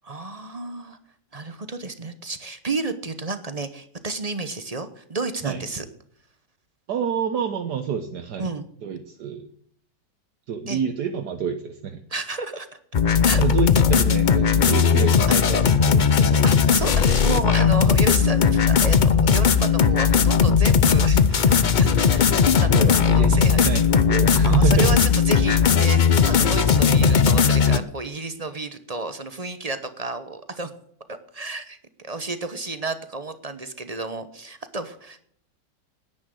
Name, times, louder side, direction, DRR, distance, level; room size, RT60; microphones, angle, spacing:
voice 1, 0.0-1.0 1.3-5.8 8.4-8.7 10.7-10.8 12.1-12.8 13.2-13.4 15.3-15.4 16.4-22.2 22.6-23.6 24.4-30.7 31.1-35.2, right 3 dB, 30° right, 10 dB, 0.9 m, -31 dB
voice 2, 6.9-8.5 8.8-9.5 10.5-12.0 13.4-16.4 22.7-25.0, right 8 dB, 70° right, 6 dB, 1.6 m, -27 dB
sound 1, 12.9-27.8, left 6 dB, 80° left, 0.4 m, -18 dB
10.0 x 10.0 x 7.7 m, 0.65 s
omnidirectional pair, 1.9 m